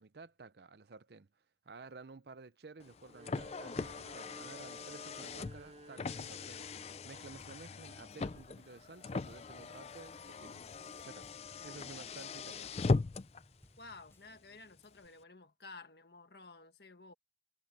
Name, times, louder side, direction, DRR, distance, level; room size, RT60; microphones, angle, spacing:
voice 1, 0.0-10.7 11.0-11.3 11.6-12.8, right 4 dB, 65° right, 0.6 m, -53 dB
Car, 2.8-13.4, left 3 dB, 35° left, 0.4 m, -39 dB
sound 1, 3.0-7.1, right 1 dB, 40° right, 3.2 m, -55 dB
sound 2, 7.4-15.1, equal, 15° left, 4.3 m, -66 dB
voice 2, 13.8-17.1, left 3 dB, 65° left, 1.5 m, -53 dB
head